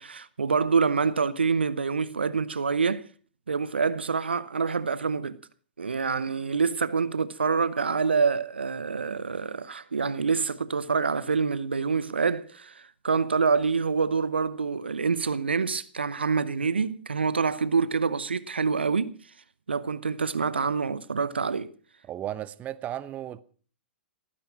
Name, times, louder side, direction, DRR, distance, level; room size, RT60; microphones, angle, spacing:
voice 1, 0.0-3.1 3.5-5.4 5.8-19.1 19.7-21.7, right 5 dB, 80° right, 0.8 m, -26 dB
voice 2, 22.1-23.4, right 12 dB, 25° right, 0.9 m, -34 dB
18.5 x 10.0 x 6.0 m
figure-of-eight pair, 110°, 6 cm